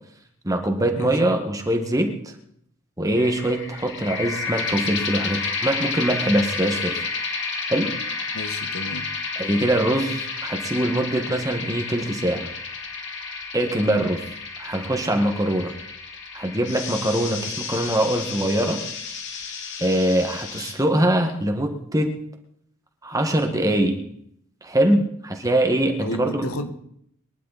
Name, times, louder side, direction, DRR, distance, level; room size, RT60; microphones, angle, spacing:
voice 1, 0.4-2.1 3.0-6.9 7.7-7.9 9.3-12.5 13.5-14.2 14.6-15.7 16.3-18.8 19.8-22.1 23.0-24.0 24.6-26.5, right 1 dB, 15° right, 3 dB, 1.7 m, -23 dB
voice 2, 1.0-1.3 8.3-9.1 26.0-26.7, left 1 dB, 70° left, 8 dB, 1.5 m, -32 dB
sound 1, 3.2-20.7, left 4 dB, 55° left, 2.7 m, -31 dB
23.0 x 11.0 x 4.2 m, 0.71 s
head